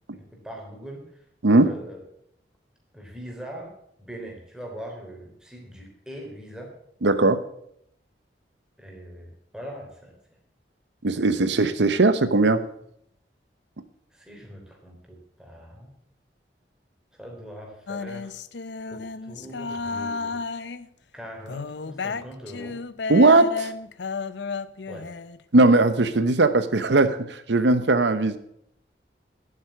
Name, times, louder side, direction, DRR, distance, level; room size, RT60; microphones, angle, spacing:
voice 1, 0.1-1.2 1.5-2.0 2.9-6.8 8.8-10.1 14.1-16.0 17.1-18.3 18.9-20.4 21.1-22.8 24.9-25.1, equal, 5° right, 0 dB, 3.4 m, -41 dB
voice 2, 1.4-1.7 7.0-7.4 11.0-12.6 23.1-23.7 25.5-28.4, right 2 dB, 85° right, 12 dB, 0.8 m, -19 dB
sound 1, 17.9-20.9 21.5-25.4, left 4 dB, 80° left, 0.6 m, -32 dB
11.0 x 8.5 x 7.3 m, 0.70 s
head